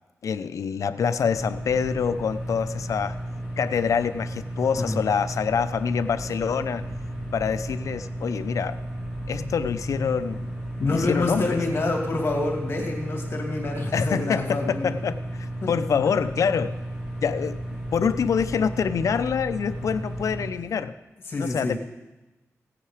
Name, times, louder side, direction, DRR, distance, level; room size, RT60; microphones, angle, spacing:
voice 1, 0.2-3.2 3.6-6.8 7.3-8.8 9.3-10.5 10.9-11.6 13.9-16.8 17.2-17.6 17.9-20.9 21.4-21.8, left 6 dB, 75° left, 11 dB, 0.5 m, -26 dB
sound 1, 1.2-20.5, right 1 dB, 15° right, 2.7 m, -34 dB
voice 2, 10.8-15.0 15.6-15.7 21.3-21.8, left 2 dB, 45° left, 0 dB, 2.5 m, -27 dB
16.5 x 8.8 x 4.9 m, 1.1 s
wide cardioid pair, 155°, 5 cm